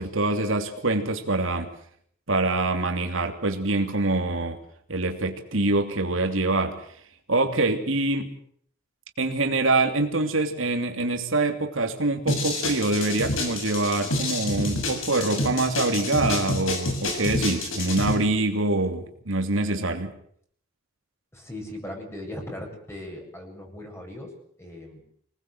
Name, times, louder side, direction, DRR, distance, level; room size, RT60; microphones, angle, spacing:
voice 1, 0.0-1.7 2.3-4.6 4.9-6.8 7.3-8.4 9.2-20.1, right 2 dB, 75° right, 5 dB, 3.0 m, -25 dB
sound 1, 12.3-18.1, left 2 dB, 75° left, 6.9 m, -28 dB
voice 2, 21.3-24.3 24.6-25.0, left 1 dB, 15° left, 1 dB, 7.5 m, -38 dB
26.5 x 19.5 x 8.0 m, 0.64 s
head